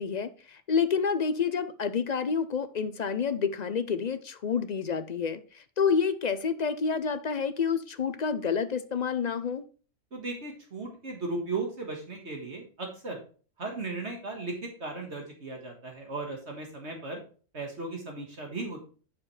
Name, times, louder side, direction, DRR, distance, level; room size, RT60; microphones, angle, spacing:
voice 1, 0.0-9.6, left 6 dB, 50° left, 12 dB, 0.5 m, -29 dB
voice 2, 10.1-13.2 13.6-17.2 17.5-18.8, right 3 dB, 55° right, 1 dB, 1.9 m, -36 dB
8.9 x 7.0 x 3.3 m, 0.38 s
omnidirectional pair, 1.3 m